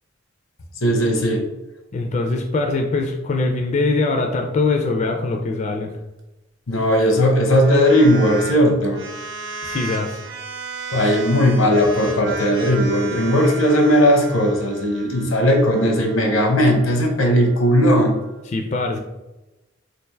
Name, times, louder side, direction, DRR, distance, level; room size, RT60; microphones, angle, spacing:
voice 1, 0.8-1.4 6.7-9.0 10.9-18.2, equal, 90° left, 3 dB, 0.8 m, -17 dB
voice 2, 1.9-5.9 9.6-10.2 18.5-19.0, left 3 dB, 35° left, 3 dB, 0.3 m, -22 dB
sound 1, 7.5-8.5 8.8-18.4, right 4 dB, 65° right, 0.8 m, -35 dB
3.3 x 2.4 x 4.4 m, 1.0 s
head